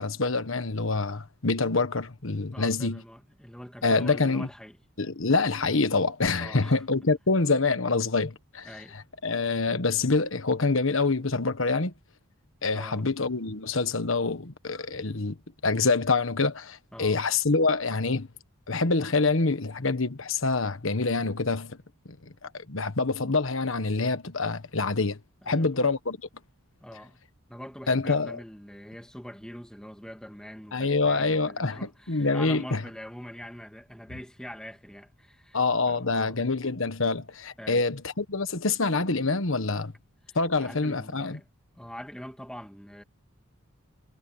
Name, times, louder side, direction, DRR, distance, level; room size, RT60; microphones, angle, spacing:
voice 1, 0.0-3.0 3.8-4.5 5.0-11.9 12.6-15.3 15.6-18.3 18.7-21.8 22.1-22.2 22.5-25.2 25.5-26.2 27.9-28.4 30.7-32.8 35.5-39.9 40.3-41.4, left 3 dB, 65° left, 1.4 m, -26 dB
voice 2, 2.5-4.8 6.4-6.8 8.6-8.9 12.7-13.0 16.9-17.2 25.5-25.7 26.8-27.2 27.5-35.6 35.9-36.4 37.6-37.9 40.3-41.5 41.8-43.0, equal, 5° left, 1.9 m, -43 dB
head